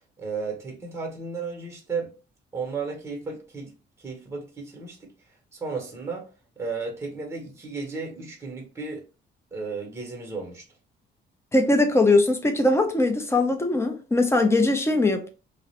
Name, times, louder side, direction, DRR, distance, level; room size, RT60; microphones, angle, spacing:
voice 1, 0.2-2.1 2.5-5.1 5.5-6.3 6.6-9.0 9.5-10.6, right 4 dB, 15° right, 0.9 m, -34 dB
voice 2, 11.5-15.3, left 2 dB, 15° left, 0.5 m, -21 dB
2.4 x 2.0 x 2.8 m
cardioid pair, 90°, 20 cm